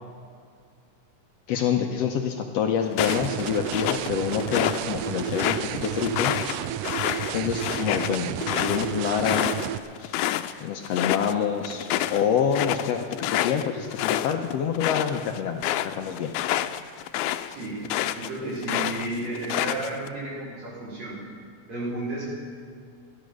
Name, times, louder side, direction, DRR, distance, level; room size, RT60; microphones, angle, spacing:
voice 1, 1.5-6.3 7.3-8.3 8.6-9.5 10.0-10.2 10.6-16.3, left 7 dB, 70° left, 4 dB, 1.7 m, -27 dB
sound 1, 2.9-4.8 5.2-10.5 10.8-11.3 11.6-18.3 18.6-20.1, left 13 dB, 90° left, 2.0 m, -28 dB
sound 2, 3.0-9.8, right 11 dB, 90° right, 1.4 m, -31 dB
voice 2, 17.5-21.2 21.7-22.2, right 2 dB, 65° right, -7 dB, 5.8 m, -33 dB
15.5 x 11.5 x 6.3 m, 2.2 s
omnidirectional pair, 3.3 m